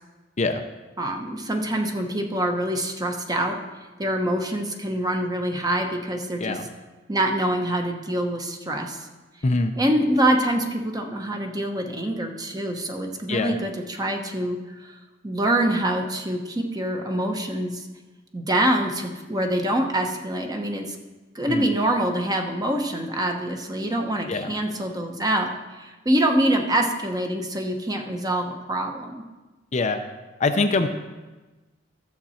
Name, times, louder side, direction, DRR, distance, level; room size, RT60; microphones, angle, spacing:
voice 1, 1.0-3.6 4.0-6.6 7.1-9.1 9.8-15.0 15.2-17.9 18.3-21.0 21.3-25.5 25.8-29.2, right 1 dB, 20° right, 3 dB, 1.0 m, -25 dB
voice 2, 9.4-9.7 13.3-13.6 21.5-21.7 24.3-24.5 29.7-30.0 30.4-30.9, left 3 dB, 35° left, 7 dB, 0.5 m, -23 dB
13.0 x 7.4 x 4.3 m, 1.2 s
head